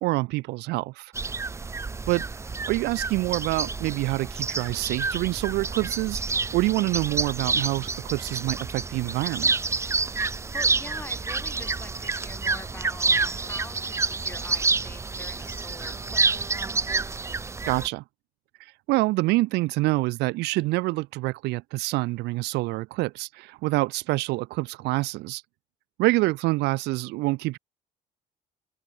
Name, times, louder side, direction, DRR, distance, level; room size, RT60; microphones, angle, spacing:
voice 1, 0.0-1.1 2.1-2.2 2.7-6.2 6.5-9.5 17.7-18.0 18.9-25.4 26.0-27.6, right 21 dB, 85° right, 0.4 m, -26 dB
sound 1, 1.1-17.9, right 4 dB, 15° right, 0.5 m, -28 dB
voice 2, 10.5-16.3, left 3 dB, 10° left, 1.1 m, -44 dB
open air
cardioid pair, 110°, 17 cm